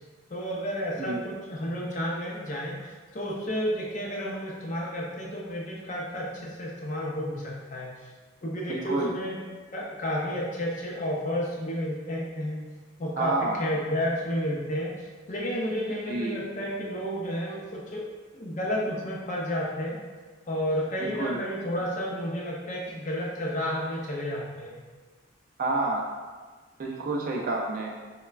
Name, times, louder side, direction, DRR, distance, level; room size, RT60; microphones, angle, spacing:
voice 1, 0.3-7.9 8.4-9.4 9.7-12.6 13.0-13.3 13.6-18.0 18.3-19.9 20.5-24.8, equal, 35° left, -3 dB, 0.4 m, -31 dB
voice 2, 8.7-9.1 13.2-13.6 16.1-16.4 21.0-21.4 25.6-26.1 26.8-27.9, right 2 dB, 40° right, -1 dB, 0.3 m, -29 dB
3.1 x 2.2 x 2.3 m, 1.4 s
head